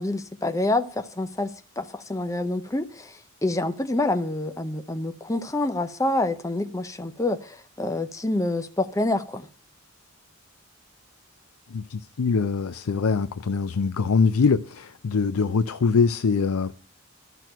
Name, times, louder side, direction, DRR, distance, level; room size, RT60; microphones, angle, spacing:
voice 1, 0.0-9.5, left 2 dB, 15° left, 0.6 m, -27 dB
voice 2, 11.7-16.7, left 5 dB, 85° left, 0.5 m, -23 dB
12.5 x 6.1 x 9.0 m
head